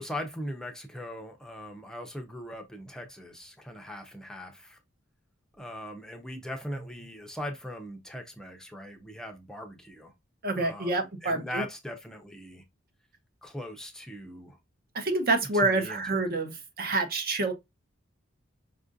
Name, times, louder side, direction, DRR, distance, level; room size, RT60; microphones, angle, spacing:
voice 1, 0.0-4.8 5.6-10.1 10.5-12.6 13.4-14.6 15.5-16.2, equal, 5° left, 0.5 m, -40 dB
voice 2, 10.4-11.6 14.9-16.5 16.8-17.5, right 2 dB, 50° right, 0.8 m, -27 dB
5.2 x 2.5 x 2.5 m
head